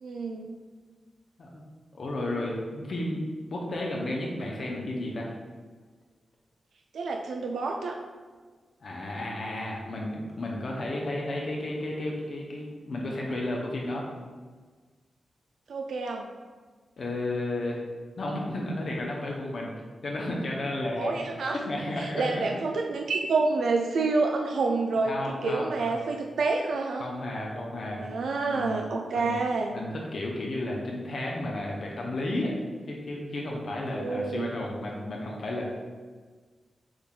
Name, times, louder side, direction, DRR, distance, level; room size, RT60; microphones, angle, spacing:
voice 1, 0.0-0.6 6.9-8.0 15.7-16.3 21.0-21.6 22.0-25.1 25.4-27.1 28.0-29.8 33.9-34.5, right 3 dB, 85° right, 2 dB, 0.3 m, -28 dB
voice 2, 1.9-3.2 3.5-5.3 8.8-14.1 17.0-17.8 18.2-19.7 20.0-21.2 21.6-22.5 25.1-26.1 27.0-28.0 28.5-28.9 29.1-29.3 29.7-32.5 32.9-35.7, left 1 dB, 55° left, -2 dB, 0.7 m, -32 dB
6.2 x 2.4 x 3.6 m, 1.5 s
wide cardioid pair, 145°, 0 cm